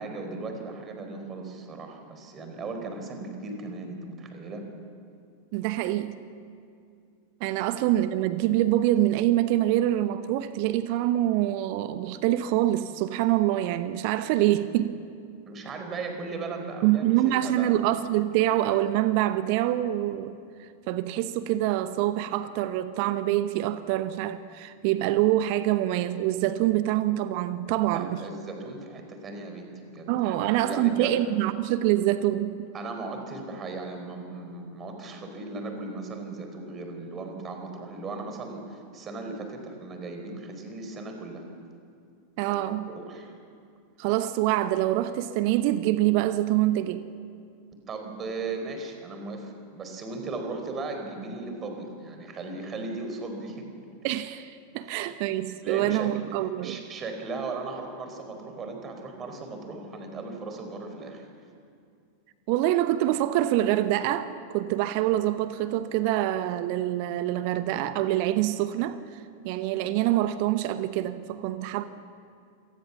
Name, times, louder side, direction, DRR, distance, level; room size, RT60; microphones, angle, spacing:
voice 1, 0.0-4.6 7.5-7.6 15.5-17.8 27.8-31.2 32.7-41.4 42.4-42.6 42.9-43.3 47.9-53.7 54.8-54.9 55.6-56.2 56.6-61.3, right 3 dB, 25° right, 5 dB, 4.6 m, -37 dB
voice 2, 5.5-6.1 7.4-15.0 16.8-20.3 20.9-28.2 30.1-32.7 42.4-42.9 44.0-47.0 54.0-56.8 62.5-69.0 69.4-71.8, right 14 dB, 50° right, 12 dB, 1.0 m, -25 dB
27.0 x 19.0 x 7.2 m, 2.4 s
figure-of-eight pair, 90°, 0 cm